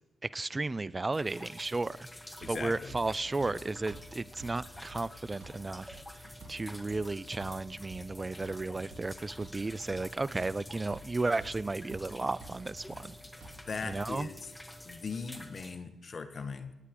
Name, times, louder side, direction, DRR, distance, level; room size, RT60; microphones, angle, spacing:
voice 1, 0.2-2.1 2.5-13.2 13.8-14.3, right 3 dB, 30° right, 20 dB, 0.4 m, -34 dB
sound 1, 1.1-15.8, left 1 dB, 10° left, 1.8 m, -49 dB
voice 2, 2.4-3.0 13.7-14.5 14.8-16.7, left 5 dB, 50° left, 9 dB, 1.3 m, -39 dB
sound 2, 2.4-14.0, right 1 dB, 65° right, 4.4 m, -52 dB
27.5 x 9.5 x 3.7 m, 1.1 s
hypercardioid pair, 40°, 0 cm